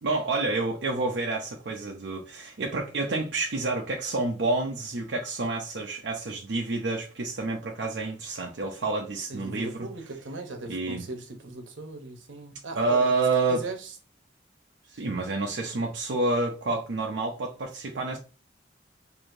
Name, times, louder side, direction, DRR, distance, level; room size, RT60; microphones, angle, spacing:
voice 1, 0.0-9.9 10.7-11.0 12.7-13.7 14.9-18.2, right 3 dB, 70° right, 0.6 m, -28 dB
voice 2, 9.3-13.1 13.5-13.9, right 2 dB, 85° right, 0.9 m, -38 dB
4.6 x 2.8 x 2.6 m
head